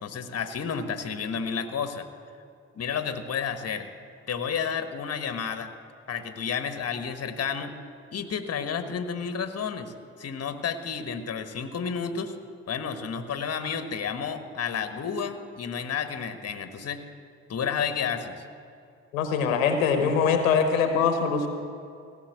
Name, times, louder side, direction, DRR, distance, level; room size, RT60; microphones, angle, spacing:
voice 1, 0.0-2.1 2.7-3.9 4.3-5.7 6.1-7.7 8.1-9.9 10.2-12.3 12.7-17.0 17.5-18.5, left 6 dB, 40° left, 9 dB, 1.2 m, -31 dB
voice 2, 19.1-21.5, left 6 dB, 85° left, 7 dB, 1.0 m, -23 dB
16.0 x 6.9 x 7.9 m, 2.5 s
hypercardioid pair, 50°, 40 cm